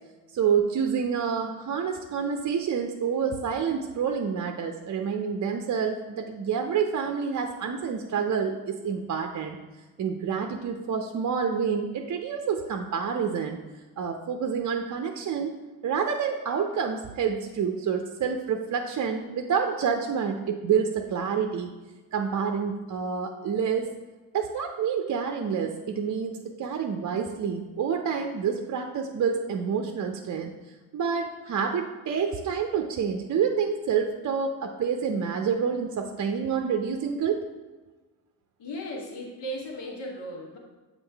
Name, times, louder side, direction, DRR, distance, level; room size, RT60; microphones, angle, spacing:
voice 1, 0.3-9.6 10.0-13.6 14.0-15.5 15.8-21.7 22.1-23.9 24.3-30.5 30.9-37.4, right 6 dB, 40° right, 4 dB, 0.6 m, -28 dB
voice 2, 38.6-40.6, equal, 75° left, 0 dB, 1.4 m, -36 dB
7.0 x 4.0 x 3.4 m, 1.3 s
hypercardioid pair, 50°, 44 cm